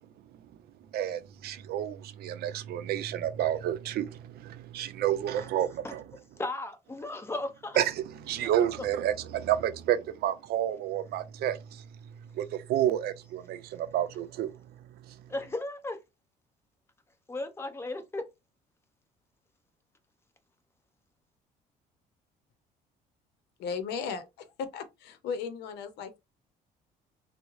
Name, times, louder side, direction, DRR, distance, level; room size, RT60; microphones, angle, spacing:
voice 1, 0.9-6.0 7.8-11.9 12.3-14.5 15.1-15.2, right 11 dB, 70° right, 0.5 m, -30 dB
voice 2, 6.4-7.8 8.4-8.5 15.3-16.0 17.3-18.3, left 2 dB, 15° left, 0.8 m, -35 dB
voice 3, 23.6-26.2, left 6 dB, 85° left, 0.7 m, -36 dB
3.6 x 2.1 x 3.0 m
cardioid pair, 110°, 17 cm